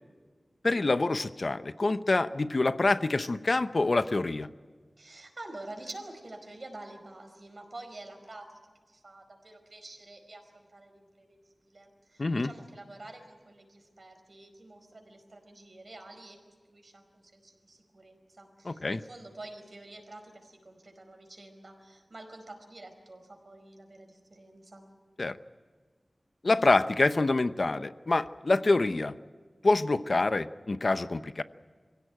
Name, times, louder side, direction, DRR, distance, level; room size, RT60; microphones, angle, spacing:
voice 1, 0.6-4.5 12.2-12.5 18.6-19.0 25.2-25.4 26.4-29.2 29.6-31.4, left 2 dB, 55° left, 12 dB, 0.8 m, -26 dB
voice 2, 5.0-8.6 8.9-24.8, right 2 dB, 55° right, 4 dB, 4.8 m, -48 dB
24.5 x 16.5 x 9.3 m, 1.5 s
wide cardioid pair, 80°, 0 cm